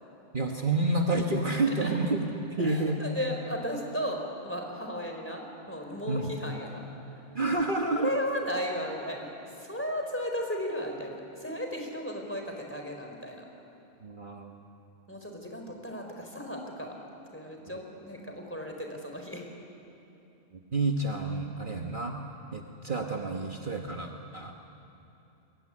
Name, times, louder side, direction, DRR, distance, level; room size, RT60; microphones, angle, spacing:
voice 1, 0.3-3.0 6.1-6.3 7.3-8.1 14.0-14.6 20.5-22.2 22.5-24.5, right 2 dB, 45° right, 2 dB, 1.5 m, -29 dB
voice 2, 1.7-2.0 2.6-6.9 7.8-13.5 15.1-17.0 17.2-19.4, equal, 10° left, 2 dB, 4.1 m, -35 dB
23.0 x 22.5 x 9.9 m, 2.9 s
omnidirectional pair, 1.3 m